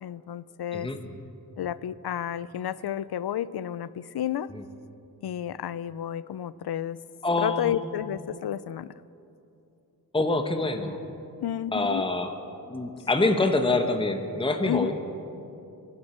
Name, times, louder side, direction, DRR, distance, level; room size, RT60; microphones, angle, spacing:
voice 1, 0.0-0.9 1.6-4.5 5.2-7.0 7.4-8.9 11.4-12.0 14.7-14.9, left 10 dB, 85° left, 18 dB, 0.5 m, -31 dB
voice 2, 7.2-7.8 10.1-11.0 11.7-12.3 12.7-14.9, left 2 dB, 15° left, 6 dB, 1.0 m, -25 dB
23.5 x 12.0 x 4.4 m, 2.7 s
wide cardioid pair, 110°, 38 cm